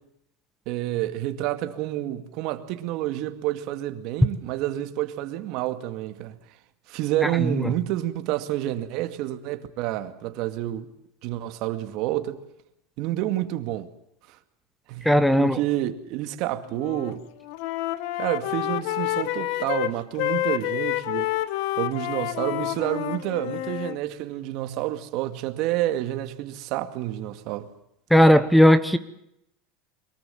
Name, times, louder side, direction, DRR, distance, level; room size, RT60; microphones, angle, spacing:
voice 1, 0.7-6.4 6.9-10.9 11.2-12.4 13.0-13.9 14.9-15.1 15.4-17.2 18.2-21.3 21.8-27.7, right 14 dB, 50° right, 2.3 m, -29 dB
voice 2, 15.0-15.6 28.1-29.0, equal, ahead, 1.1 m, -16 dB
Wind instrument woodwind instrument, 16.7-17.1 17.4-24.0, left 15 dB, 60° left, 1.4 m, -28 dB
23.5 x 22.5 x 7.2 m
supercardioid pair, 150°, 0 cm